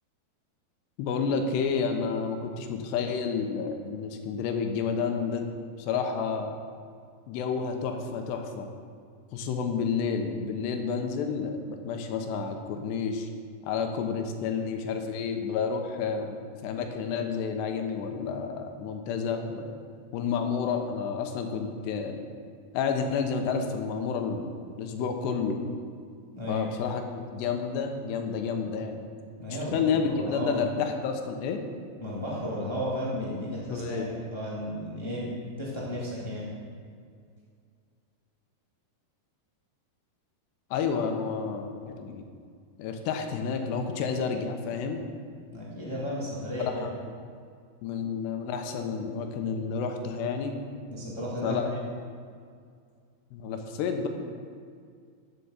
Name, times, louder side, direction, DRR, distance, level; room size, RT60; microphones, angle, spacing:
voice 1, 1.0-5.5 5.8-6.6 7.3-8.7 9.3-13.3 13.6-19.7 20.1-22.2 22.7-25.6 26.5-29.0 29.7-31.6 33.7-34.1 40.7-42.2 42.8-45.0 46.7-46.9 47.8-50.6 51.4-51.7 53.3-54.1, left 6 dB, 80° left, 5 dB, 3.1 m, -30 dB
voice 2, 26.3-26.6 29.4-30.6 32.0-35.3 35.6-36.5 45.5-46.9 50.9-51.8, equal, 30° left, -6 dB, 0.5 m, -34 dB
10.5 x 7.7 x 7.1 m, 2.2 s
omnidirectional pair, 4.9 m